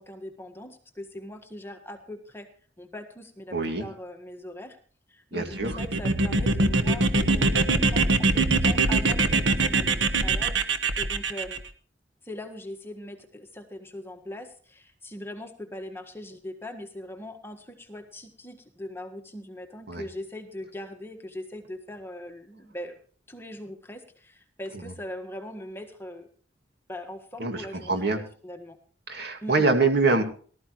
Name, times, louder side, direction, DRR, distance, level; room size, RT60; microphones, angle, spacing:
voice 1, 0.0-2.5 2.8-4.8 5.1-11.6 12.2-23.0 23.3-26.3 26.9-28.8 29.4-29.7, left 1 dB, 15° left, 5 dB, 1.6 m, -41 dB
voice 2, 3.5-3.8 5.3-5.8 19.9-20.0 27.4-28.2 29.1-30.2, right 3 dB, 60° right, 5 dB, 2.2 m, -24 dB
sound 1, 5.5-11.6, right 3 dB, 85° right, 1.3 m, -23 dB
18.5 x 13.5 x 3.1 m, 0.43 s
head